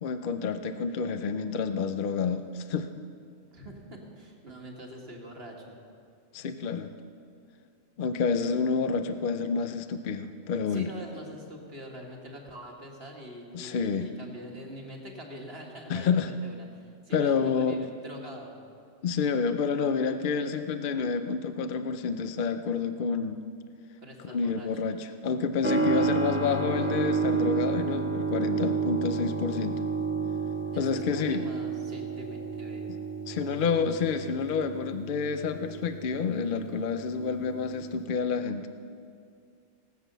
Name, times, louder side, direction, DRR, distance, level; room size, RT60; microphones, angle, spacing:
voice 1, 0.0-2.9 6.3-6.9 8.0-10.9 13.5-14.1 15.9-16.3 17.1-17.8 19.0-23.4 24.2-29.8 30.8-31.4 32.9-33.0 33.3-38.7, left 5 dB, 50° left, 9 dB, 0.7 m, -29 dB
voice 2, 3.5-5.8 10.7-18.6 24.0-24.7 30.7-32.9, equal, 50° right, 0 dB, 2.1 m, -44 dB
Keyboard (musical), 25.6-38.0, right 4 dB, 10° right, 1.2 m, -31 dB
18.5 x 8.2 x 6.7 m, 2.3 s
omnidirectional pair, 1.3 m